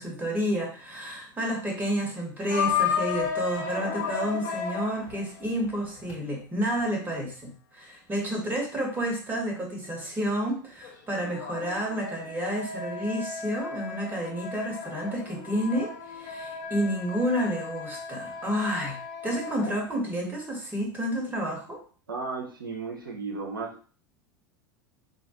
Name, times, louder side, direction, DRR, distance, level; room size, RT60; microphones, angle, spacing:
voice 1, 0.0-19.0 19.2-21.8, equal, 15° right, 1 dB, 1.4 m, -30 dB
sound 1, 2.5-6.1 10.8-20.0, left 6 dB, 50° left, 1.1 m, -34 dB
voice 2, 22.1-23.7, right 4 dB, 75° right, 0 dB, 0.6 m, -34 dB
4.9 x 2.3 x 2.8 m, 0.41 s
figure-of-eight pair, 80°, 11 cm